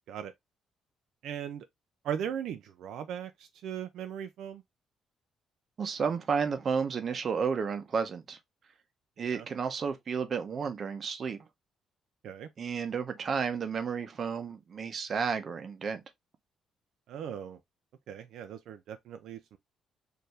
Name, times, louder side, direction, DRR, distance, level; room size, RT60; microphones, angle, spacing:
voice 1, 1.2-1.7 2.0-4.6 9.2-9.4 12.2-12.5 17.1-17.6 18.1-19.6, right 9 dB, 75° right, 0.4 m, -38 dB
voice 2, 5.8-8.4 9.2-11.4 12.6-16.0, right 6 dB, 40° right, 0.7 m, -32 dB
4.4 x 2.6 x 3.2 m
cardioid pair, 140°, 0 cm